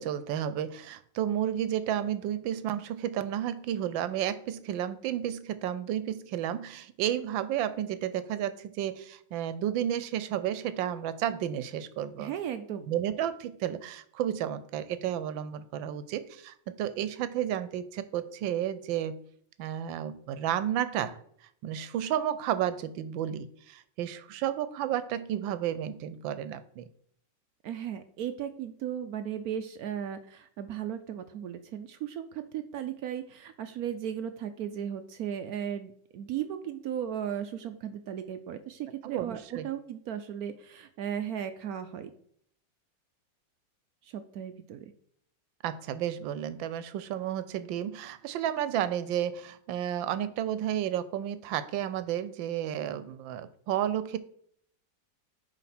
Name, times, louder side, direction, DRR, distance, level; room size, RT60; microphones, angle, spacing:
voice 1, 0.0-12.3 12.9-19.2 19.6-21.2 21.6-26.9 39.0-39.7 45.6-54.2, right 10 dB, 90° right, 14 dB, 1.4 m, -32 dB
voice 2, 12.2-12.9 27.6-42.1 44.0-44.9, right 9 dB, 70° right, 9 dB, 0.9 m, -36 dB
9.1 x 3.4 x 5.9 m, 0.65 s
omnidirectional pair, 2.0 m